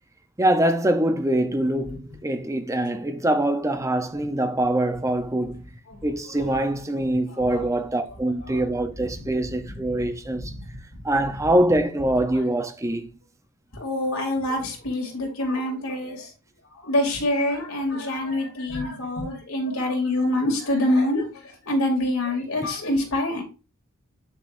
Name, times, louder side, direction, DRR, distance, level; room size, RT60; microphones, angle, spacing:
voice 1, 0.4-5.6 6.0-10.5 11.0-13.1 22.6-22.7, right 1 dB, 15° right, 0.7 m, -24 dB
voice 2, 13.8-16.3 16.8-21.3 21.7-23.4, left 1 dB, 90° left, 2.9 m, -25 dB
8.5 x 6.8 x 2.6 m
head